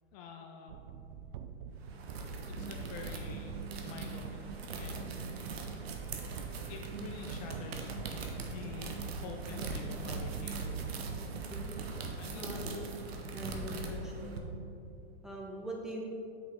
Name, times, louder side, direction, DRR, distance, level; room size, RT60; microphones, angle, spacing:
voice 1, 0.1-0.8 2.4-3.6 3.8-5.4 6.5-7.9 8.4-10.9 12.2-12.8 13.7-14.0, left 5 dB, 40° left, 2 dB, 0.6 m, -47 dB
sound 1, 0.7-12.8, right 8 dB, 45° right, 0.4 m, -47 dB
sound 2, 1.8-14.4, right 3 dB, 70° right, 1.2 m, -41 dB
voice 2, 12.4-12.8 13.3-14.4 15.2-16.0, right 1 dB, ahead, -3 dB, 1.1 m, -42 dB
8.2 x 6.2 x 3.7 m, 2.7 s
hypercardioid pair, 135°, 32 cm